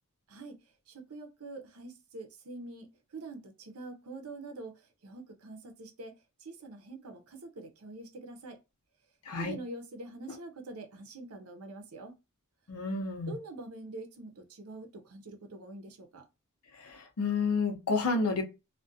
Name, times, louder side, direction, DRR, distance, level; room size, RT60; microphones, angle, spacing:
voice 1, 0.9-8.6 9.4-12.2 13.3-16.3, right 2 dB, 75° right, 0.6 m, -45 dB
voice 2, 9.3-9.6 12.7-13.4 16.7-18.4, left 4 dB, 90° left, 0.6 m, -30 dB
2.4 x 2.2 x 2.6 m
head